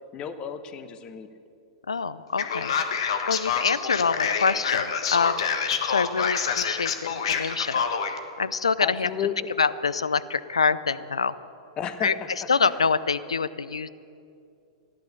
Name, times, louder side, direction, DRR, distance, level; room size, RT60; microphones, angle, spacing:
voice 1, 0.1-1.3 6.1-6.3 8.8-9.5 11.8-12.1 12.4-12.8, left 8 dB, 30° left, 9 dB, 1.1 m, -33 dB
voice 2, 1.9-2.7 3.3-5.4 5.9-7.8 8.4-9.1 9.6-11.3 12.0-12.1 12.5-13.9, left 5 dB, 90° left, 16 dB, 0.5 m, -25 dB
Male speech man speaking, 2.4-8.2, left 6 dB, 70° left, 1.3 m, -27 dB
14.5 x 11.5 x 6.7 m, 2.5 s
hypercardioid pair, 105°, 3 cm